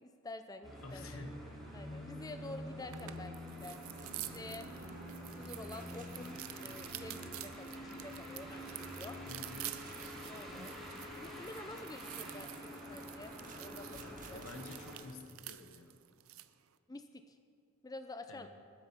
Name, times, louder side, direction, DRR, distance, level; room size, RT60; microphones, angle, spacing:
voice 1, 0.0-1.0 1.7-4.7 5.4-9.2 10.3-10.8 11.1-14.5 16.9-17.4 17.8-18.5, left 2 dB, 20° left, 8 dB, 0.5 m, -49 dB
sound 1, 0.6-15.0, equal, ahead, 3.1 m, -47 dB
voice 2, 0.8-1.6 9.3-10.0 14.3-15.9 18.3-18.5, left 2 dB, 70° left, 7 dB, 1.3 m, -50 dB
sound 2, 2.9-16.5, right 15 dB, 70° right, 0.6 m, -49 dB
sound 3, 3.9-14.8, right 2 dB, 40° right, 1.5 m, -60 dB
20.0 x 9.0 x 5.6 m, 2.4 s
head